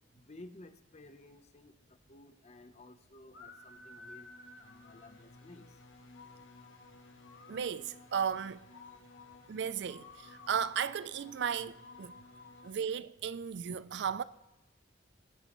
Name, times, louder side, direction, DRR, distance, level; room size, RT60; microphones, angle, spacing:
voice 1, 0.1-1.7 2.1-4.3 4.6-5.7, left 2 dB, 35° left, 0.8 m, -54 dB
sound 1, 3.3-12.7, left 3 dB, 90° left, 1.5 m, -54 dB
voice 2, 7.5-8.6 9.5-12.1 12.6-14.2, right 7 dB, 60° right, 0.4 m, -35 dB
22.5 x 10.0 x 3.0 m
head